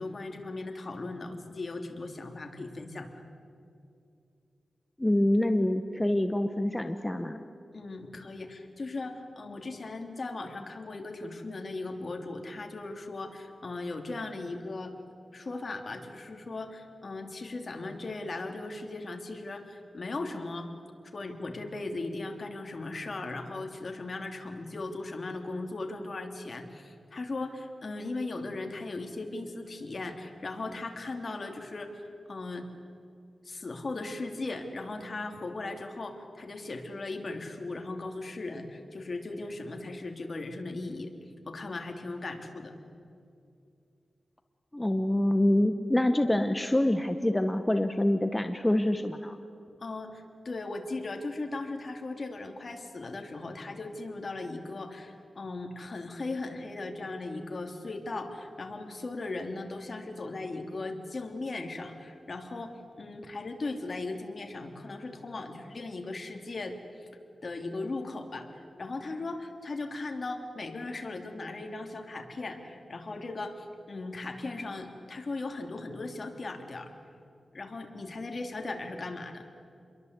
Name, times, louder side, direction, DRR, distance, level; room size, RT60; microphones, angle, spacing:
voice 1, 0.0-3.2 7.7-14.9 15.3-20.7 21.1-32.0 32.3-32.7 33.4-41.1 41.5-42.7 49.8-67.1 67.4-76.9 77.5-79.5, left 2 dB, 50° left, 4 dB, 3.0 m, -38 dB
voice 2, 5.0-7.4 44.7-49.4, left 1 dB, 15° left, 7 dB, 1.0 m, -26 dB
28.5 x 22.5 x 8.3 m, 2.5 s
wide cardioid pair, 95°, 0 cm